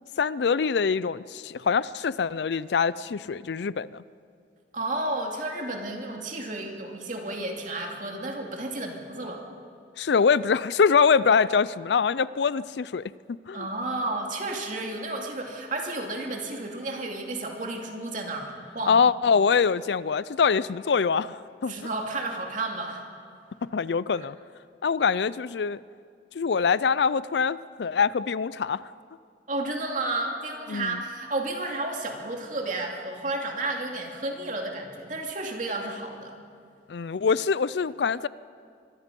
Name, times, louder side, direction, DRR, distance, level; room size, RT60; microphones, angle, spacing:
voice 1, 0.2-4.0 10.0-13.0 13.5-13.7 18.9-21.7 23.7-24.4 24.8-25.8 26.3-28.8 30.7-31.0 36.9-38.3, left 5 dB, 75° left, 18 dB, 0.4 m, -24 dB
voice 2, 4.7-9.4 13.5-19.0 21.7-23.0 29.5-36.4, right 2 dB, 45° right, 1 dB, 2.5 m, -32 dB
25.0 x 22.0 x 5.4 m, 2.2 s
head